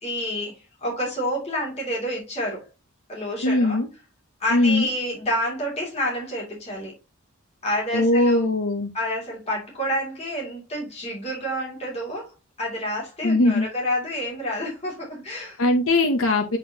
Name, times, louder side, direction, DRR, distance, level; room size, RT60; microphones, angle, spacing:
voice 1, 0.0-2.6 3.1-3.8 4.4-6.9 7.6-8.4 8.9-12.3 12.6-15.6, equal, 30° left, 2.7 m, -29 dB
voice 2, 3.4-3.9 4.5-4.9 7.9-8.9 13.2-13.7 15.6-16.6, left 2 dB, 75° left, 0.8 m, -20 dB
8.2 x 4.2 x 2.8 m
head